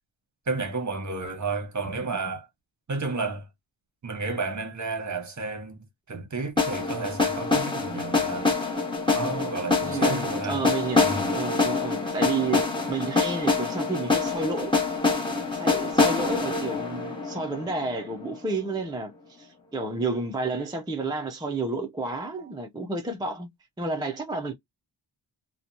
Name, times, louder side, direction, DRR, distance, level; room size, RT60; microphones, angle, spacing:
voice 1, 0.5-2.5 2.9-3.5 4.0-8.5 9.1-10.6 11.0-11.3 22.3-22.5, right 3 dB, 35° right, 0.9 m, -32 dB
sound 1, 6.6-18.5, left 3 dB, 10° left, 1.1 m, -26 dB
voice 2, 9.8-14.7 15.5-23.5 23.8-24.5, right 3 dB, 10° right, 0.3 m, -31 dB
2.7 x 2.2 x 2.5 m
wide cardioid pair, 110°, 48 cm